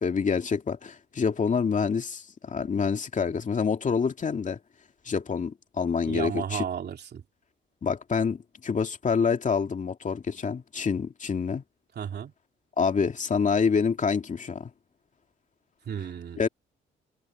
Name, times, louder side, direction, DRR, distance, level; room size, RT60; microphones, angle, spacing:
voice 1, 0.0-4.6 5.0-6.6 7.8-11.6 12.8-14.7 16.4-16.5, left 5 dB, 40° left, 2.4 m, -27 dB
voice 2, 6.1-7.2 11.9-12.3 15.9-16.4, right 8 dB, 55° right, 2.9 m, -33 dB
cardioid pair, 90°, 20 cm